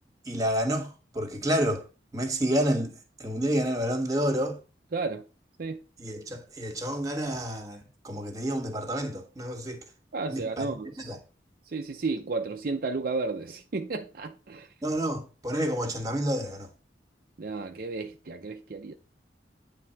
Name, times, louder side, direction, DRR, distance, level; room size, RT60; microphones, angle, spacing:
voice 1, 0.2-1.8 2.1-2.9 3.2-4.6 6.0-9.8 10.3-10.7 11.0-11.2 14.8-16.7, equal, 20° right, 1.4 m, -29 dB
voice 2, 4.9-5.2 5.6-5.8 10.1-11.2 11.7-14.7 17.4-18.9, right 3 dB, 55° right, 0.6 m, -33 dB
9.4 x 3.6 x 5.7 m
head